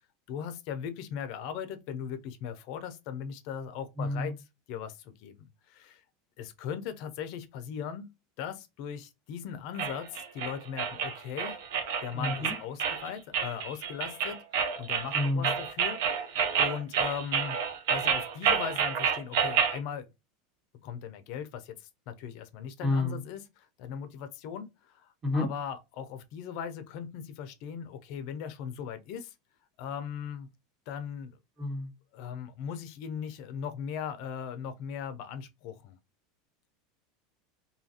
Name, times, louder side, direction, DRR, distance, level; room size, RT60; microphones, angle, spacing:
voice 1, 0.3-4.3 4.7-6.0 6.4-8.1 8.4-11.6 12.0-17.6 17.9-20.1 20.8-29.3 29.8-30.5 30.9-31.4 32.1-36.0, left 8 dB, 60° left, 0.4 m, -39 dB
voice 2, 4.0-4.3 12.1-12.5 15.1-15.5 22.8-23.2 25.2-25.5 31.6-31.9, left 2 dB, 25° right, 1.2 m, -29 dB
sound 1, 9.8-19.8, right 7 dB, 75° right, 0.6 m, -29 dB
2.7 x 2.4 x 2.7 m
supercardioid pair, 120°, 0 cm